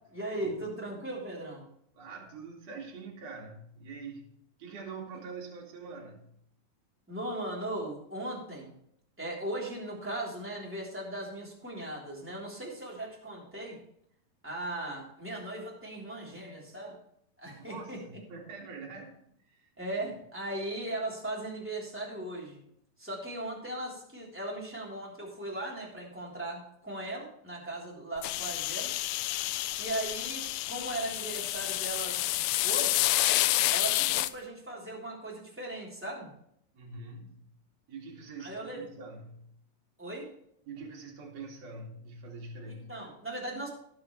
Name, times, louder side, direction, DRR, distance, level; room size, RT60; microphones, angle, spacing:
voice 1, 0.1-1.6 7.1-8.8 9.2-13.8 14.4-17.0 17.4-18.0 19.8-22.6 23.0-28.9 29.8-32.3 32.6-33.1 33.7-36.3 38.4-38.8 40.0-40.3 42.7-43.7, right 1 dB, 5° right, -4 dB, 3.0 m, -38 dB
voice 2, 1.9-4.3 4.6-6.3 17.6-19.7 36.7-37.4 37.9-39.5 40.7-42.9, right 4 dB, 50° right, -1 dB, 3.3 m, -44 dB
sound 1, 28.2-34.3, left 17 dB, 85° left, 2.3 m, -29 dB
19.0 x 7.1 x 3.2 m, 0.70 s
omnidirectional pair, 4.1 m